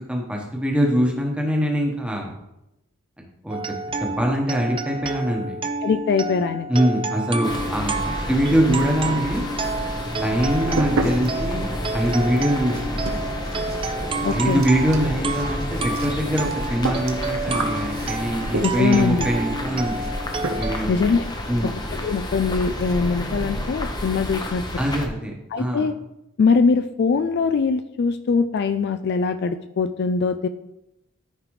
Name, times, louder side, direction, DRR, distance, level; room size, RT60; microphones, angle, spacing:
voice 1, 0.1-2.3 3.4-3.6 4.0-5.6 6.7-9.4 10.1-11.7 11.9-13.2 14.3-20.1 20.6-20.9 21.5-21.7 24.8-25.8, equal, 5° right, 0 dB, 1.2 m, -23 dB
sound 1, 3.5-20.8, right 3 dB, 25° right, 0.4 m, -30 dB
voice 2, 5.8-6.7 14.2-14.6 18.6-19.2 20.9-21.2 22.0-24.6 25.5-25.9 26.4-30.5, left 5 dB, 50° left, 11 dB, 0.3 m, -22 dB
sound 2, 7.4-25.1, left 1 dB, 20° left, 0.8 m, -30 dB
sound 3, 9.3-9.9 10.2-19.1 20.0-20.2 20.4-20.9 21.2-21.3 21.7-21.8 22.0-22.2 22.5-23.0, right 2 dB, 70° right, 0.9 m, -32 dB
13.5 x 5.0 x 3.2 m, 0.89 s
head